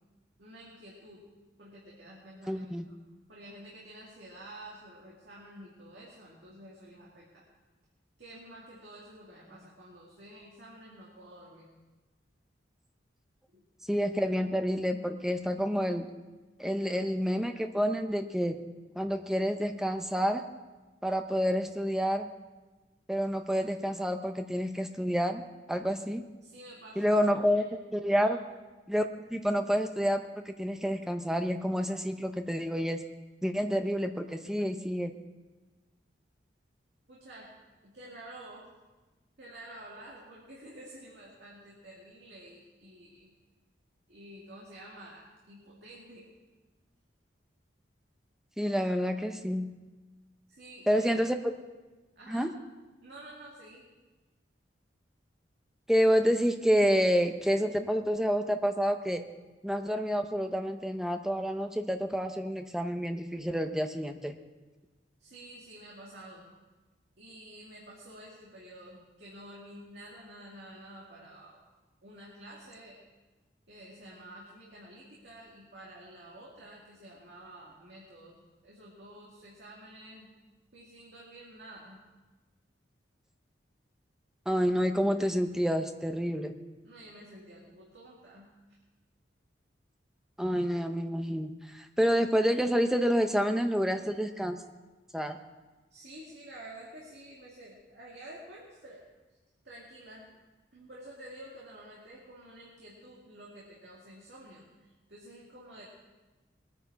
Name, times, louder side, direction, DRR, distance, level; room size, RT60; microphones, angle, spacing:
voice 1, 0.4-1.2 1.6-2.7 3.3-7.4 8.2-11.7 13.5-13.6 26.4-27.7 28.2-28.3 37.1-37.5 37.8-38.7 39.4-43.3 44.1-46.3 50.5-51.2 52.2-52.5 53.0-53.9 65.2-66.5 67.2-71.6 72.0-73.1 73.7-78.3 78.6-80.3 80.7-82.0 86.8-88.5 95.9-99.1 99.6-100.3 100.7-104.7 105.1-105.8, right 1 dB, 65° right, -5 dB, 2.3 m, -50 dB
voice 2, 2.5-2.8 13.9-16.1 16.6-18.6 19.0-20.4 21.0-22.3 23.1-25.4 25.7-26.2 27.0-27.6 27.9-28.4 28.9-33.0 33.4-35.1 48.6-49.7 50.9-51.4 52.3-52.5 55.9-59.2 59.6-64.3 84.5-86.5 90.4-94.6 95.1-95.4, equal, 5° right, 6 dB, 0.7 m, -28 dB
21.0 x 9.5 x 4.7 m, 1.2 s
head